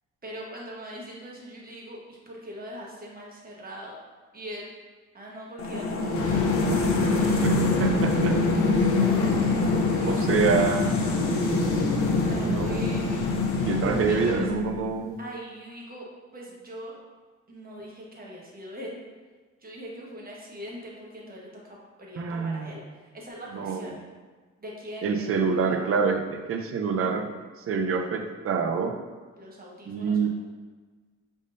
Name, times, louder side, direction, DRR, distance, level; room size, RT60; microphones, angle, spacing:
voice 1, 0.2-3.9 4.3-4.7 5.1-6.5 7.1-7.6 9.4-11.4 12.0-13.1 14.1-14.5 15.2-16.1 16.3-16.9 17.5-19.0 19.6-24.0 24.6-25.8 29.3-30.3, equal, 30° right, -3 dB, 1.2 m, -42 dB
sound 1, 5.6-14.9, left 3 dB, 45° left, 0.7 m, -25 dB
sound 2, 6.1-14.4, left 3 dB, 75° left, 0.9 m, -32 dB
voice 2, 7.8-8.6 10.1-10.9 12.4-13.0 13.7-15.2 22.1-22.8 23.5-23.9 25.0-27.3 27.7-28.9 29.9-30.3, right 5 dB, 50° right, 6 dB, 0.5 m, -26 dB
5.1 x 3.6 x 2.6 m, 1.4 s
cardioid pair, 90°, 30 cm